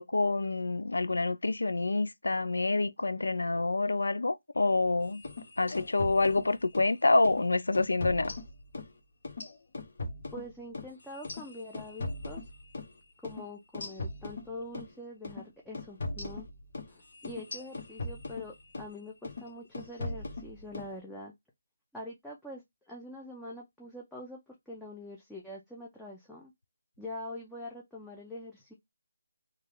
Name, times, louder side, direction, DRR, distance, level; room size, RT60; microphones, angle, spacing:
voice 1, 0.0-5.2 5.6-8.4, left 3 dB, 85° left, 0.4 m, -27 dB
sound 1, 5.1-6.9 7.2-7.4 7.7-8.9 9.2-12.9 13.2-13.4 13.7-14.9 15.2-15.4 15.7-18.9 19.2-19.5 19.7-20.9, left 2 dB, 55° left, 1.2 m, -39 dB
voice 2, 10.3-12.5 13.2-16.5 16.9-21.3 21.9-26.5 27.0-28.7, left 1 dB, ahead, 0.5 m, -44 dB
3.2 x 2.3 x 3.7 m
figure-of-eight pair, 165°, 0 cm